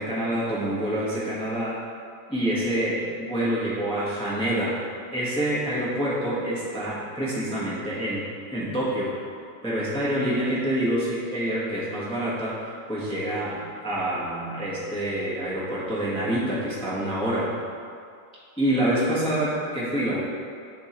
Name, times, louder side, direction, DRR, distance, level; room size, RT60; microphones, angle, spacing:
voice 1, 0.0-1.8 2.3-4.8 5.1-8.2 8.5-9.1 9.6-12.6 12.9-17.5 18.6-20.2, right 1 dB, 5° left, -9 dB, 0.9 m, -27 dB
10.5 x 3.7 x 3.0 m, 2.3 s
omnidirectional pair, 2.1 m